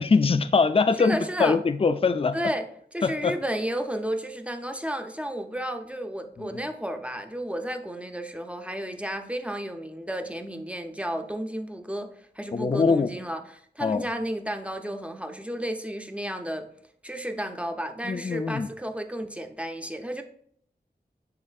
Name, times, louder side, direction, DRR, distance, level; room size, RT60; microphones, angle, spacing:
voice 1, 0.0-2.4 3.0-3.4 6.4-6.5 12.5-13.1 13.8-14.0 18.0-18.7, left 4 dB, 35° left, 0.4 m, -23 dB
voice 2, 1.0-1.6 2.3-2.7 2.9-16.7 17.0-20.2, equal, 5° right, 0.6 m, -32 dB
9.7 x 4.2 x 2.4 m
wide cardioid pair, 65°, 18 cm